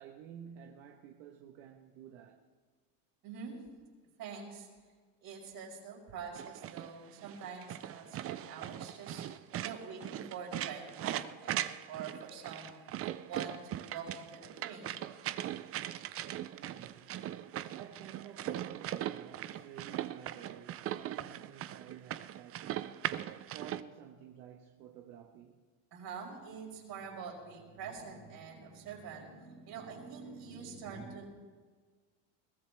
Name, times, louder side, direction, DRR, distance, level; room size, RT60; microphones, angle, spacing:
voice 1, 0.0-2.5 16.4-17.3 17.7-22.9 23.5-25.6, right 9 dB, 80° right, 1.3 m, -52 dB
voice 2, 3.2-3.6 4.2-4.7 5.2-9.2 9.6-12.8 13.3-15.0 25.9-31.3, right 5 dB, 55° right, 5.0 m, -45 dB
sound 1, 6.4-23.8, right 12 dB, 35° right, 0.5 m, -40 dB
21.5 x 15.5 x 3.4 m
supercardioid pair, 115°, 43 cm